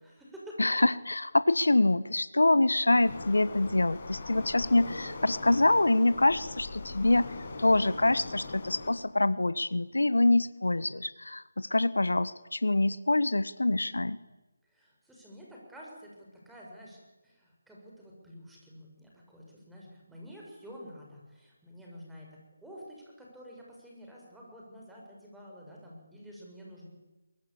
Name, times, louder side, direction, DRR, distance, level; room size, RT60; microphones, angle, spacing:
voice 1, 0.0-0.6 14.6-26.9, equal, 5° right, -3 dB, 6.4 m, -49 dB
voice 2, 0.6-14.2, left 2 dB, 80° left, 17 dB, 1.2 m, -25 dB
Waves surf, 2.9-8.9, left 3 dB, 40° left, 5.9 m, -41 dB
23.0 x 23.0 x 8.8 m, 1.1 s
figure-of-eight pair, 160°, 0 cm